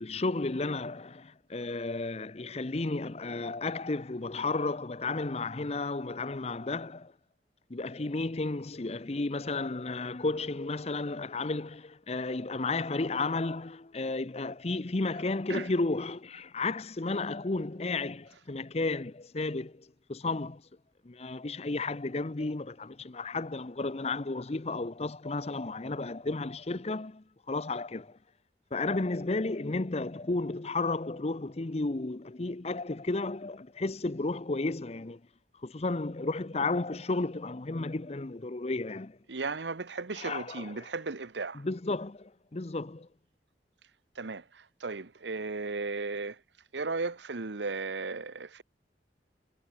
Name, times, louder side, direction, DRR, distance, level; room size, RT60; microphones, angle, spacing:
voice 1, 0.0-7.1 7.7-20.6 21.0-28.2 28.7-35.2 35.6-39.2 40.2-40.9 41.5-43.1, left 3 dB, 35° left, 0.7 m, -33 dB
voice 2, 39.3-41.6 44.2-46.4 46.7-48.6, right 3 dB, 85° right, 1.1 m, -35 dB
head